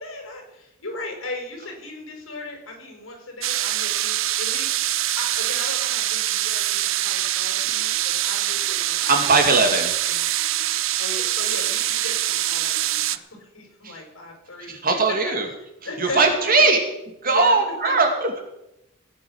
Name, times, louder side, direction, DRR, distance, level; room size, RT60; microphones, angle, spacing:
voice 1, 0.0-9.5 10.0-10.3 11.0-14.7 15.8-16.6 17.2-17.6 17.8-18.0, left 2 dB, 75° left, 2 dB, 5.4 m, -37 dB
sound 1, 3.4-13.2, right 14 dB, 70° right, 0.6 m, -24 dB
voice 2, 9.1-10.3 13.8-14.0 14.7-15.5 16.0-16.8 17.2-18.4, right 3 dB, 45° right, 4 dB, 2.6 m, -20 dB
17.0 x 9.4 x 6.4 m, 0.89 s
head